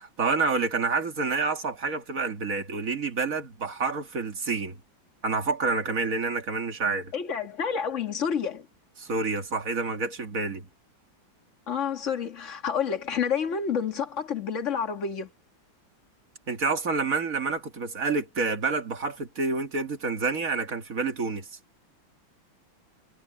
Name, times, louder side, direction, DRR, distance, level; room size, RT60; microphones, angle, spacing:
voice 1, 0.0-4.8 5.2-7.1 9.0-10.7 16.5-21.5, right 4 dB, 45° right, 2.2 m, -28 dB
voice 2, 7.1-8.7 11.7-15.3, left 7 dB, 40° left, 2.1 m, -29 dB
omnidirectional pair, 2.1 m